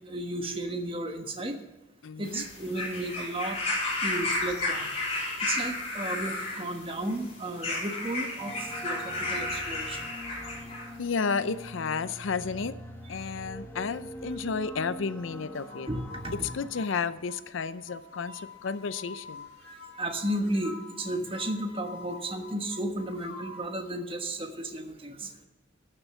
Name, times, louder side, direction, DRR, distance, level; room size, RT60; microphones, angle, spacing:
voice 1, 0.1-1.6 2.2-3.6 4.0-4.9 5.4-8.6 8.8-10.1 15.9-16.5 20.0-25.3, right 1 dB, 25° right, 5 dB, 1.2 m, -33 dB
voice 2, 2.0-2.4 11.0-12.7 13.1-15.9 16.5-19.5, left 5 dB, 75° left, 14 dB, 0.5 m, -32 dB
sound 1, 2.2-10.9 11.8-11.9, left 2 dB, 35° left, 3.6 m, -33 dB
sound 2, 8.4-16.8, right 1 dB, 10° left, 1.1 m, -43 dB
sound 3, 15.5-23.7, left 4 dB, 55° left, 2.4 m, -46 dB
12.5 x 6.8 x 6.9 m, 1.1 s
head